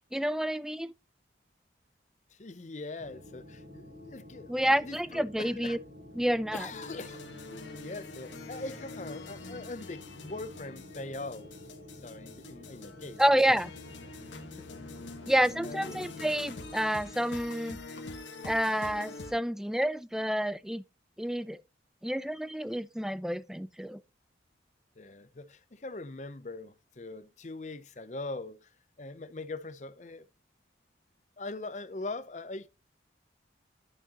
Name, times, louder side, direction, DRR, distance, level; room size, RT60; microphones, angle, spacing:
voice 1, 0.1-0.9 4.5-5.8 6.2-6.7 13.2-13.7 15.3-17.8 18.4-20.8 21.2-21.6 22.0-24.0, equal, 5° right, 0.4 m, -29 dB
voice 2, 2.4-5.8 6.5-7.2 7.7-11.5 12.0-13.5 14.6-14.8 15.6-15.8 25.0-28.7 29.0-30.2 31.4-32.7, left 2 dB, 40° left, 0.6 m, -41 dB
sound 1, 3.0-16.9, left 1 dB, 50° right, 4.2 m, -50 dB
sound 2, 6.7-19.3, left 3 dB, 85° left, 1.5 m, -45 dB
11.0 x 6.4 x 2.9 m
head